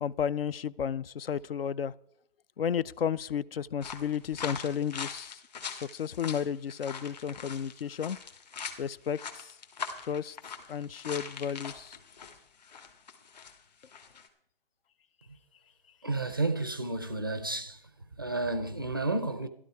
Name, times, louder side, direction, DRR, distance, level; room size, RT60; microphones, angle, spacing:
voice 1, 0.0-1.9 2.6-5.4 5.7-8.2 8.8-9.5 10.0-10.4 10.7-12.0, left 8 dB, 75° left, 0.6 m, -33 dB
sound 1, 3.8-13.6 13.8-14.3, left 6 dB, 45° left, 1.7 m, -42 dB
voice 2, 16.0-17.8 18.2-19.5, right 2 dB, 25° right, 0.4 m, -31 dB
12.5 x 12.0 x 4.7 m
hypercardioid pair, 170°, 29 cm